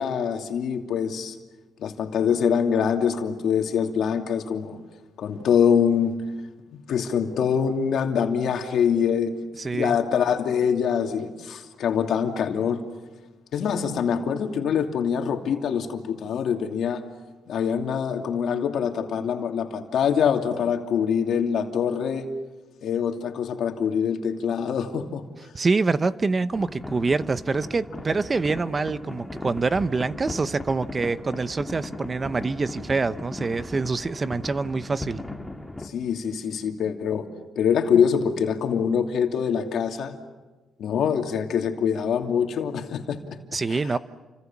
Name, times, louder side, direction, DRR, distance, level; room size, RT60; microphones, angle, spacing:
voice 1, 0.0-1.3 1.8-4.8 5.2-6.2 6.9-9.3 9.7-12.8 13.5-17.0 17.5-22.3 22.8-25.2 35.8-37.3 37.6-40.1 40.8-43.4 43.7-44.0, left 7 dB, 70° left, 4 dB, 2.8 m, -24 dB
voice 2, 9.6-9.9 25.5-35.2 43.5-44.0, right 4 dB, 30° right, 14 dB, 0.9 m, -25 dB
sound 1, 26.5-35.9, left 1 dB, 5° left, 2.7 m, -37 dB
30.0 x 26.5 x 7.4 m, 1.2 s
cardioid pair, 90°, 0 cm